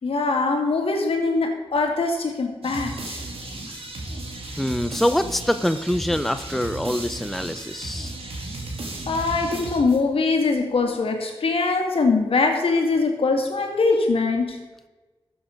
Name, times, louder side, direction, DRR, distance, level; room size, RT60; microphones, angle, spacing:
voice 1, 0.0-3.2 9.1-14.6, left 3 dB, 75° left, 3 dB, 2.0 m, -22 dB
sound 1, 2.6-10.3, right 2 dB, 80° right, 2.5 m, -34 dB
voice 2, 4.6-8.1, left 1 dB, ahead, 11 dB, 0.5 m, -24 dB
12.5 x 7.2 x 5.2 m, 1.2 s
wide cardioid pair, 75°, 10 cm